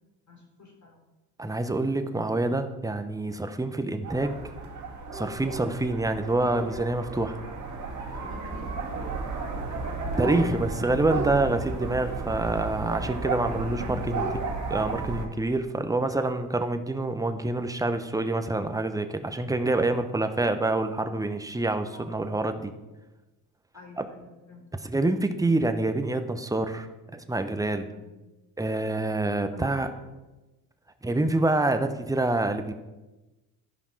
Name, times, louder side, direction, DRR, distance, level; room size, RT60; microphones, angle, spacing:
voice 1, 0.3-1.0 8.1-10.0 21.9-22.3 23.7-24.7 27.8-28.1 29.5-30.1, left 3 dB, 40° left, 1 dB, 3.5 m, -47 dB
voice 2, 1.4-4.4 5.1-7.4 10.2-14.4 14.7-22.7 24.0-24.1 24.8-26.9 27.1-27.9 28.6-29.9 31.0-32.7, right 2 dB, 10° right, 8 dB, 0.9 m, -27 dB
sound 1, 4.0-15.3, right 3 dB, 40° right, 2.2 m, -33 dB
13.0 x 5.3 x 4.9 m, 1.1 s
hypercardioid pair, 65°, 44 cm